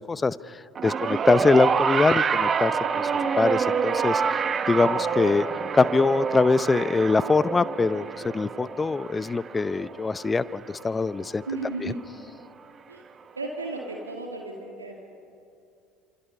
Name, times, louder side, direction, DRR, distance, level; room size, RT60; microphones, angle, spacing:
voice 1, 0.1-3.1 3.4-5.4 5.7-11.4 11.8-11.9, left 4 dB, 20° left, 18 dB, 0.6 m, -23 dB
sound 1, 0.8-11.2 12.2-12.3, right 6 dB, 35° right, 1.3 m, -27 dB
voice 2, 11.5-12.0 12.9-13.0 13.4-14.9, right 3 dB, 85° right, 1 dB, 2.2 m, -34 dB
27.5 x 27.0 x 5.6 m, 2.6 s
figure-of-eight pair, 60°, 0 cm